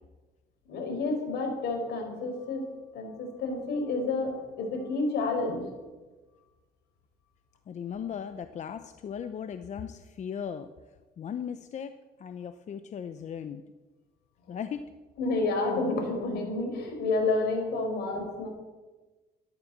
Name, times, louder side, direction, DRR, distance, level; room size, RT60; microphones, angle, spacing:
voice 1, 0.7-2.6 2.9-5.7 14.5-14.6 15.2-18.5, left 3 dB, 75° left, 2 dB, 5.2 m, -30 dB
voice 2, 7.7-10.7 11.2-13.6 14.5-14.9 17.9-18.0, left 8 dB, 45° left, 10 dB, 0.8 m, -37 dB
13.5 x 12.0 x 7.4 m, 1.2 s
cardioid pair, 110°, 17 cm